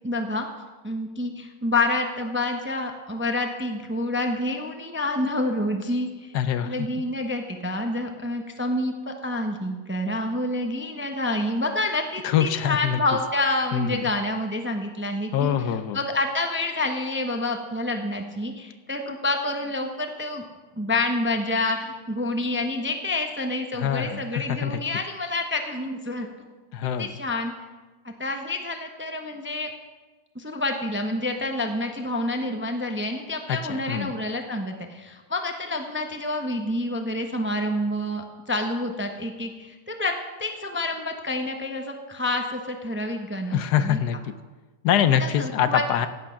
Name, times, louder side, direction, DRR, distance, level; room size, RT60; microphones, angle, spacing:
voice 1, 0.0-0.5 0.8-6.4 6.6-20.4 20.8-26.3 27.0-27.5 28.0-29.7 30.3-40.1 40.4-44.0 45.2-45.8, left 2 dB, 10° right, 4 dB, 0.7 m, -28 dB
voice 2, 6.3-6.7 12.2-13.0 13.7-14.0 15.3-16.0 23.8-24.8 26.7-27.1 33.5-34.1 43.5-44.3 44.8-46.1, left 9 dB, 75° left, 11 dB, 1.2 m, -24 dB
15.5 x 8.7 x 5.8 m, 1.3 s
omnidirectional pair, 1.8 m